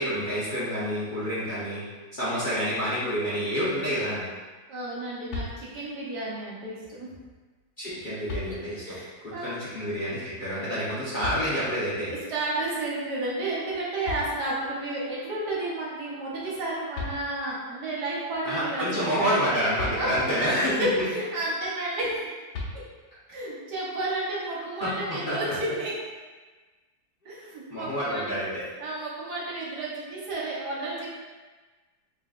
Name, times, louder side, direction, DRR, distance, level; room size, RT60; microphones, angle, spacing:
voice 1, 0.0-1.8 2.1-4.2 7.8-8.9 9.2-12.1 18.4-20.9 24.8-24.9 25.3-25.4 27.7-28.6, equal, 45° left, -11 dB, 0.6 m, -28 dB
voice 2, 4.7-7.1 8.4-9.6 12.3-19.3 19.9-22.3 23.3-25.9 27.2-28.4 28.8-31.1, right 2 dB, 60° right, -5 dB, 1.3 m, -31 dB
sound 1, 5.3-6.1 7.6-7.7 8.3-9.0 11.2-12.0 13.7-13.8 14.0-14.9 16.6-16.7 16.9-17.7 19.8-20.6 22.5-23.3, left 3 dB, 75° left, 1.6 m, -37 dB
3.8 x 3.8 x 2.4 m, 1.3 s
omnidirectional pair, 2.2 m